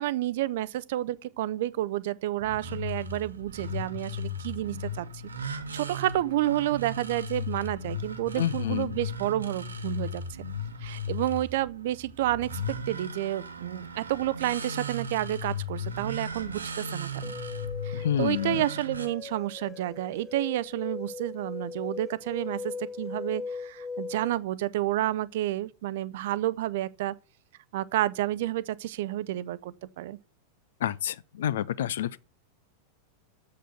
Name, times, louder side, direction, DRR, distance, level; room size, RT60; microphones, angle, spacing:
voice 1, 0.0-5.1 5.4-10.2 10.8-17.3 17.8-27.1 27.7-30.2, right 14 dB, 55° right, 0.6 m, -30 dB
sound 1, 2.4-19.1, left 2 dB, 75° right, 1.3 m, -36 dB
voice 2, 8.4-9.0 17.9-18.6 30.8-32.2, left 11 dB, 60° left, 0.5 m, -29 dB
sound 2, 17.2-24.4, left 4 dB, 20° left, 1.1 m, -39 dB
7.6 x 6.7 x 8.0 m
figure-of-eight pair, 90°, 0 cm